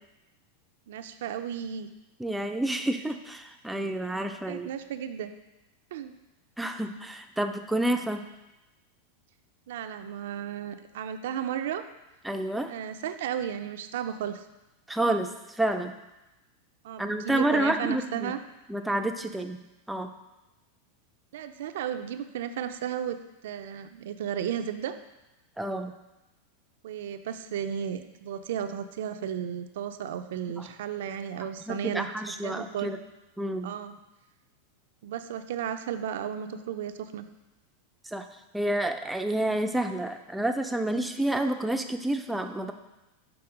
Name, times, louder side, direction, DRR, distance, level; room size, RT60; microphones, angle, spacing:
voice 1, 0.9-1.9 4.5-5.3 5.9-6.1 9.7-11.8 12.7-14.4 16.8-18.4 21.3-23.2 23.4-25.0 26.8-32.9 33.6-33.9 35.0-37.2, right 9 dB, 75° right, 9 dB, 0.4 m, -34 dB
voice 2, 2.2-4.7 6.6-8.2 12.2-12.7 14.9-15.9 17.0-18.3 18.7-19.6 19.9-20.1 25.6-25.9 30.6-30.7 31.7-33.0 33.4-33.7 38.1-38.3 38.5-42.7, right 1 dB, 5° right, 6 dB, 0.4 m, -29 dB
6.0 x 3.5 x 4.9 m, 1.0 s
supercardioid pair, 125°, 0 cm